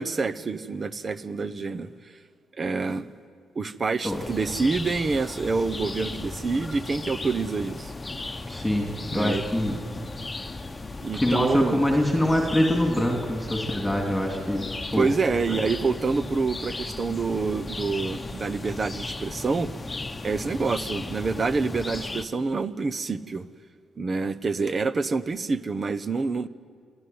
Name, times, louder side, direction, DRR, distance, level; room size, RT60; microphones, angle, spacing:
voice 1, 0.0-2.2 2.6-3.1 3.6-7.9 9.1-9.4 11.0-11.8 14.9-19.7 20.2-23.4 24.0-26.5, right 4 dB, 35° right, 14 dB, 0.9 m, -27 dB
sound 1, 4.1-22.3, left 2 dB, 20° left, 1.1 m, -36 dB
voice 2, 8.5-9.8 11.1-14.6 14.9-15.1 15.5-15.6, left 1 dB, 5° left, 1 dB, 3.0 m, -24 dB
27.5 x 12.5 x 9.5 m, 2.1 s
cardioid pair, 90°, 0 cm